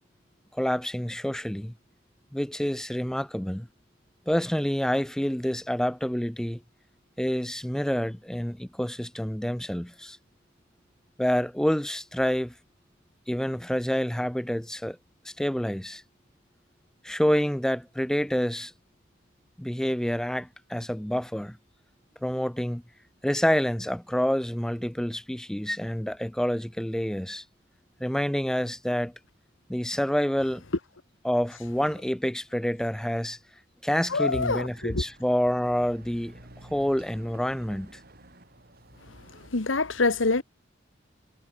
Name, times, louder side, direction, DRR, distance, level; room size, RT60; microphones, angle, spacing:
voice 1, 0.5-1.7 2.3-3.7 4.3-6.6 7.2-10.2 11.2-12.5 13.3-15.0 15.3-16.0 17.0-18.7 19.6-21.6 22.2-22.8 23.2-27.4 28.0-29.1 29.7-30.6 31.2-33.4 33.8-38.0, equal, 5° left, 0.5 m, -28 dB
voice 2, 34.1-35.0 39.3-40.4, left 3 dB, 90° left, 1.5 m, -26 dB
Chatter / Car passing by / Motorcycle, 34.1-39.5, right 1 dB, 50° right, 5.4 m, -51 dB
head